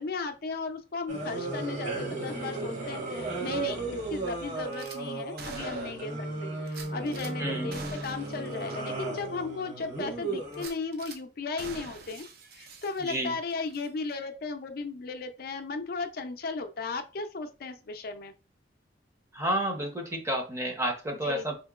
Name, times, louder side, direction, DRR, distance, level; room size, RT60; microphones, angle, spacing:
voice 1, 0.0-6.1 6.4-12.2 12.5-18.3 21.2-21.5, left 4 dB, 55° left, 7 dB, 0.4 m, -36 dB
sound 1, 1.1-10.6, right 3 dB, 40° right, 1.2 m, -35 dB
Gunshot gunfire / Glass, 4.7-5.0 5.4-6.1 6.7-7.3 7.7-8.4 8.7-8.8 9.2-9.3 10.5-11.2 11.6-13.4 13.7-13.9, right 4 dB, 55° right, 0.5 m, -45 dB
voice 2, 7.4-7.7 13.0-13.3 19.3-21.5, right 1 dB, 15° right, 2 dB, 0.7 m, -30 dB
4.4 x 2.8 x 2.3 m, 0.33 s
head